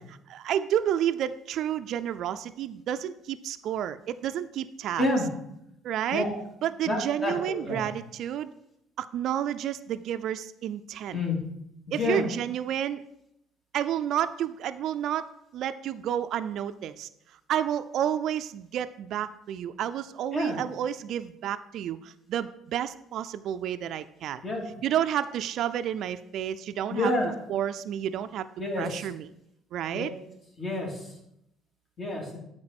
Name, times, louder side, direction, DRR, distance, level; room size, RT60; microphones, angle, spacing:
voice 1, 0.3-5.0 5.8-6.2 6.6-8.5 9.0-11.2 11.9-13.0 13.7-15.3 15.5-17.1 17.5-24.4 24.8-27.1 27.5-28.5 28.8-29.3 29.7-30.1, right 10 dB, 65° right, 11 dB, 0.4 m, -30 dB
voice 2, 6.8-7.8 11.1-11.3 11.9-12.2 20.3-20.6 24.4-24.6 26.9-27.3 28.6-29.1 29.9-30.1 30.6-31.1 32.0-32.4, left 2 dB, 40° left, -1 dB, 3.0 m, -28 dB
8.7 x 4.4 x 5.9 m, 0.79 s
supercardioid pair, 80°, 0 cm